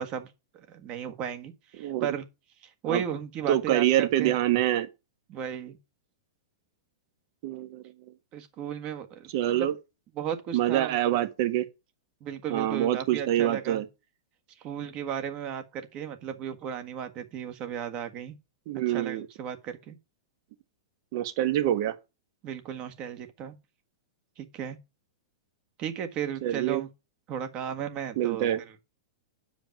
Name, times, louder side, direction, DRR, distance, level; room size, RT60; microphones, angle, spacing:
voice 1, 0.0-2.2 2.8-4.4 5.3-5.8 8.3-9.7 10.1-11.2 12.2-13.8 14.6-18.4 18.9-20.0 22.4-23.6 24.4-24.8 25.8-26.9 27.3-28.5, right 8 dB, 35° right, 1.6 m, -35 dB
voice 2, 3.5-4.9 7.4-7.8 9.3-9.7 10.5-11.7 12.5-13.8 18.7-19.3 21.1-21.9 26.4-26.8 28.2-28.6, right 13 dB, 50° right, 1.5 m, -25 dB
9.0 x 5.1 x 6.0 m
hypercardioid pair, 135°, 3 cm